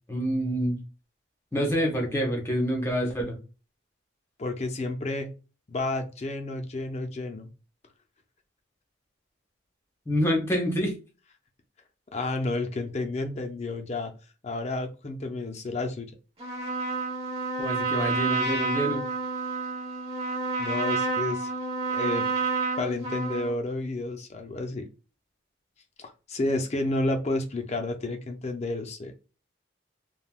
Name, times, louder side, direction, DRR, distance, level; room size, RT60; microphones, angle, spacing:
voice 1, 0.1-0.8 1.5-3.4 10.1-11.0 17.6-19.1, equal, 15° left, 1 dB, 0.9 m, -27 dB
voice 2, 4.4-5.3 5.7-7.5 12.1-14.1 14.4-16.1 20.6-21.5 21.9-22.3 22.8-24.9 26.0-29.1, left 2 dB, 35° left, 5 dB, 0.5 m, -31 dB
Trumpet, 16.4-23.5, right 3 dB, 30° right, 1.0 m, -29 dB
3.4 x 2.2 x 2.3 m, 0.33 s
head